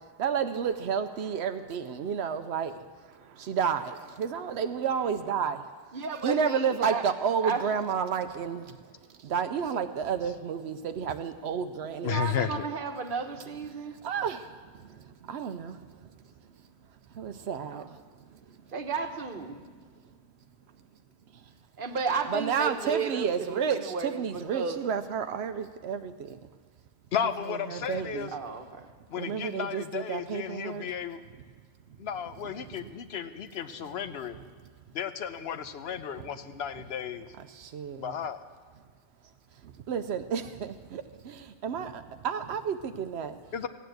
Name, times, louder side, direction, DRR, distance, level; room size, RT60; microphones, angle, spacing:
voice 1, 0.2-2.7 3.1-5.6 6.2-8.8 9.2-12.2 13.7-14.5 14.8-15.8 17.1-18.0 22.3-26.4 27.7-28.3 29.2-30.9 37.5-38.1 39.6-43.4, right 7 dB, 85° right, 8 dB, 0.9 m, -31 dB
voice 2, 5.9-7.1 7.4-7.6 7.9-8.0 12.1-13.9 17.7-17.9 18.7-19.7 21.8-24.8 28.3-28.9 33.7-34.0, right 5 dB, 55° right, 7 dB, 1.2 m, -33 dB
voice 3, 12.0-12.6 27.1-28.3 29.1-31.2 32.0-34.4 34.9-37.3 38.0-38.4 43.5-43.7, left 8 dB, 75° left, 11 dB, 1.0 m, -33 dB
15.5 x 9.4 x 7.9 m, 1.5 s
omnidirectional pair, 1.1 m